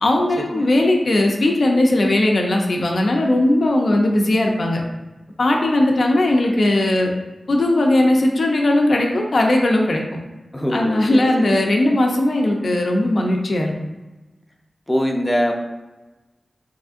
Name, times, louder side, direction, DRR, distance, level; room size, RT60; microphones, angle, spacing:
voice 1, 0.0-4.8 5.4-7.1 7.5-10.0 10.7-13.7, left 1 dB, 65° left, 1 dB, 0.5 m, -18 dB
voice 2, 10.5-11.6 14.9-15.5, equal, 15° left, 0 dB, 0.5 m, -23 dB
3.7 x 3.2 x 2.5 m, 1.1 s
wide cardioid pair, 75°, 0 cm